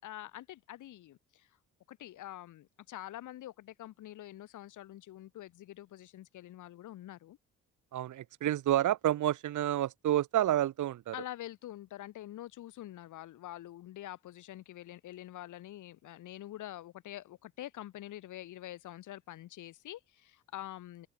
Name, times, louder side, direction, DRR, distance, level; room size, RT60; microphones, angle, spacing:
voice 1, 0.0-1.5 1.9-7.4 11.1-21.1, left 13 dB, 80° left, 3.2 m, -46 dB
voice 2, 7.9-11.1, right 12 dB, 75° right, 4.0 m, -29 dB
open air
cardioid pair, 90°, 30 cm